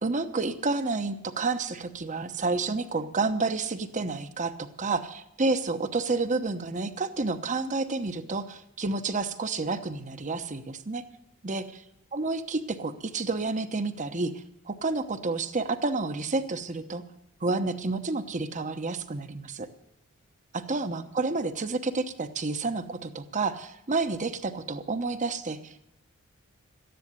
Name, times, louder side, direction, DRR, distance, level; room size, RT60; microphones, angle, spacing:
voice 1, 0.0-11.0 11.4-11.7 12.1-17.0 17.4-19.7 20.5-25.8, right 3 dB, 35° right, 10 dB, 1.0 m, -30 dB
14.0 x 10.5 x 9.6 m, 0.79 s
head